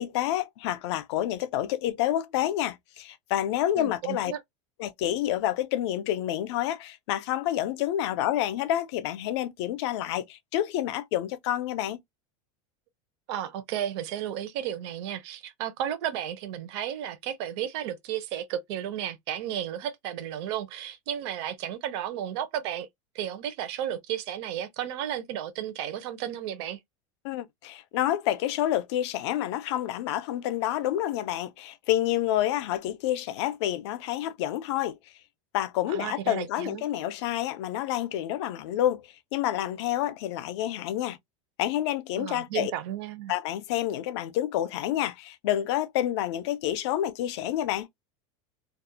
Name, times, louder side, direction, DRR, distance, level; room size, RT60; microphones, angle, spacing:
voice 1, 0.0-4.3 4.8-12.0 27.2-35.0 35.5-39.0 39.3-41.2 41.6-42.7 43.3-47.9, left 12 dB, 60° left, 0.4 m, -28 dB
voice 2, 3.8-4.4 13.3-22.9 23.1-26.8 35.9-36.8 42.2-43.3, right 10 dB, 55° right, 0.5 m, -33 dB
2.3 x 2.1 x 2.7 m
supercardioid pair, 175°, 16 cm